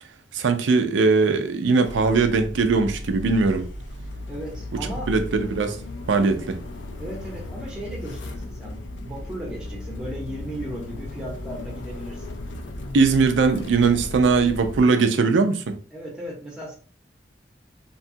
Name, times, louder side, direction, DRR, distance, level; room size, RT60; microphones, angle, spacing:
voice 1, 0.3-3.7 5.1-5.8 6.1-6.6 12.9-15.8, right 4 dB, 80° right, 0.4 m, -20 dB
sound 1, 1.8-14.8, left 1 dB, 80° left, 0.4 m, -36 dB
voice 2, 4.3-5.1 7.0-12.3 15.9-16.8, right 1 dB, 5° right, 0.7 m, -36 dB
2.7 x 2.3 x 2.6 m
head